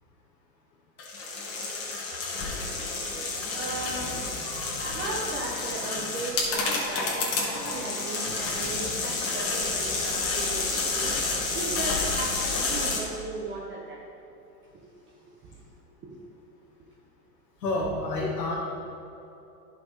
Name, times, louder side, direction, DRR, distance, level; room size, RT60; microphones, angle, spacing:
sound 1, 1.0-13.0, left 3 dB, 30° left, 2.1 m, -30 dB
voice 1, 3.0-14.0 14.7-15.6 16.0-16.2, right 2 dB, 25° right, -4 dB, 1.0 m, -37 dB
voice 2, 17.6-18.5, left 2 dB, 85° left, -5 dB, 1.9 m, -28 dB
10.5 x 6.4 x 4.8 m, 2.9 s
hypercardioid pair, 130°, 49 cm